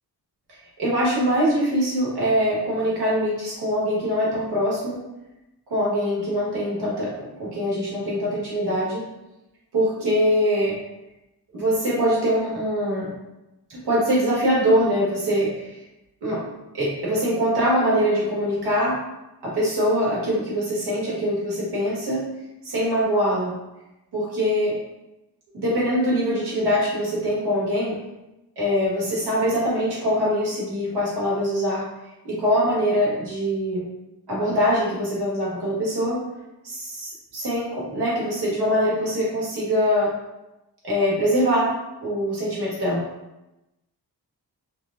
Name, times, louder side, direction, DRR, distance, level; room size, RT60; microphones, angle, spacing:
voice 1, 0.8-5.0 5.7-7.1 7.4-9.0 9.7-10.8 11.5-13.1 13.7-15.8 16.2-16.4 16.7-19.0 19.4-22.2 22.6-23.5 24.1-24.7 25.5-27.9 28.6-31.8 32.2-33.8 34.3-36.2 36.6-40.1 40.8-41.7 42.0-43.0, equal, 75° right, -5 dB, 1.5 m, -23 dB
4.6 x 2.2 x 2.4 m, 0.96 s
wide cardioid pair, 150°, 40 cm